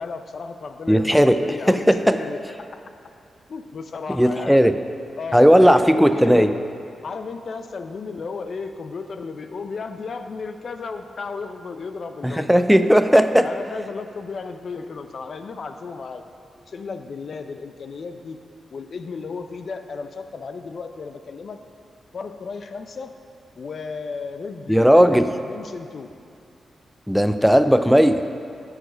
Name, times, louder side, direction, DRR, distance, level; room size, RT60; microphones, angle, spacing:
voice 1, 0.0-2.8 3.5-4.6 5.2-6.6 7.0-13.2 13.4-16.2 16.7-18.4 18.7-21.6 22.1-23.1 23.6-24.9 25.1-26.1, left 4 dB, 60° left, 8 dB, 0.5 m, -34 dB
voice 2, 0.9-1.4 1.7-2.2 4.1-4.8 5.3-6.5 12.2-13.5 24.7-25.3 27.1-28.3, equal, ahead, 9 dB, 0.4 m, -16 dB
12.5 x 4.9 x 5.0 m, 2.5 s
cardioid pair, 65°, 0 cm